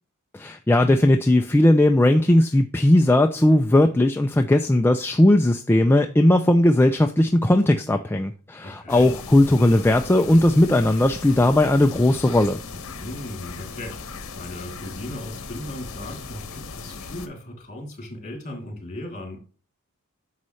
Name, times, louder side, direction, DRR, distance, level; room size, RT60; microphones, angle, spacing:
voice 1, 0.3-12.6, left 1 dB, 10° left, 0.3 m, -18 dB
voice 2, 8.6-9.1 12.7-19.4, left 1 dB, 35° left, 2.9 m, -37 dB
sound 1, 8.9-17.3, left 4 dB, 65° left, 1.0 m, -38 dB
9.6 x 6.4 x 3.1 m
head